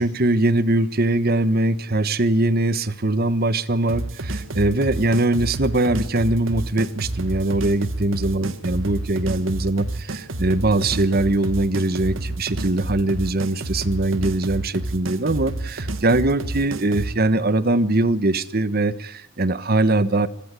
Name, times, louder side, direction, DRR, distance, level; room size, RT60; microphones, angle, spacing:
voice 1, 0.0-20.3, right 2 dB, 50° right, 15 dB, 1.2 m, -21 dB
sound 1, 3.9-17.1, right 2 dB, 75° right, 1.7 m, -30 dB
26.5 x 17.5 x 8.3 m, 0.77 s
head